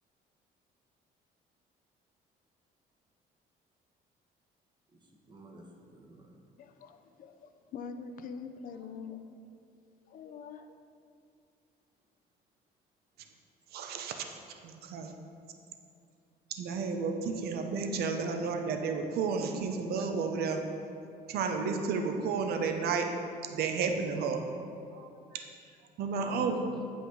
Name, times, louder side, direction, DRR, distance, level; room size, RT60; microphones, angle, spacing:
voice 1, 4.9-6.4 8.7-8.9 26.1-26.6, right 1 dB, 25° right, 0 dB, 1.1 m, -49 dB
voice 2, 6.6-9.3 10.1-10.8, left 5 dB, 55° left, 8 dB, 0.5 m, -44 dB
voice 3, 13.7-14.4 14.6-15.1 16.5-20.6 21.3-23.1 23.5-24.4 24.9-25.5 26.0-26.6, right 5 dB, 70° right, 5 dB, 0.7 m, -32 dB
8.2 x 5.2 x 3.9 m, 2.5 s
cardioid pair, 110°, 17 cm